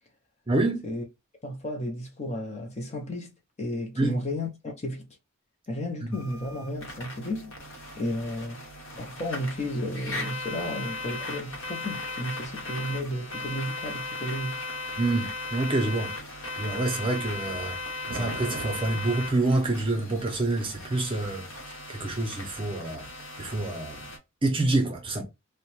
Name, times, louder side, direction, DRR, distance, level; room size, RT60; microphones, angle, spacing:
voice 1, 0.5-0.8 4.0-4.2 15.0-16.1 16.6-17.8 18.1-21.4 21.9-23.1 23.4-24.1 24.4-25.2, right 2 dB, 25° right, 0.6 m, -27 dB
voice 2, 1.4-3.3 3.6-5.1 5.7-7.5 8.0-8.6 9.0-14.6, left 1 dB, 30° left, 0.5 m, -33 dB
sound 1, 6.1-24.2, left 2 dB, 65° left, 0.9 m, -37 dB
sound 2, 17.4-19.3, right 3 dB, 70° right, 0.5 m, -39 dB
2.7 x 2.1 x 2.9 m
head